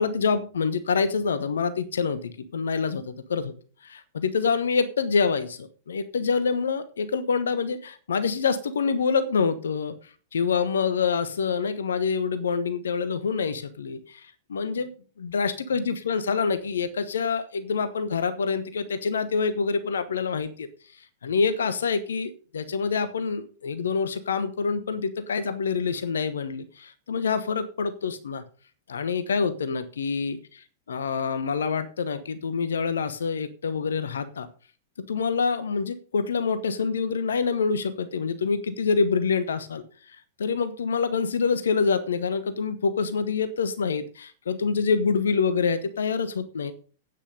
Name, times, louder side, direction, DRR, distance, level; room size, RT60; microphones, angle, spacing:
voice 1, 0.0-3.5 3.8-9.9 10.3-14.9 15.2-20.7 21.2-28.4 28.9-34.5 35.1-39.8 40.4-46.7, left 5 dB, 65° left, 12 dB, 1.0 m, -26 dB
9.8 x 8.9 x 5.3 m, 0.39 s
figure-of-eight pair, 100°, 0 cm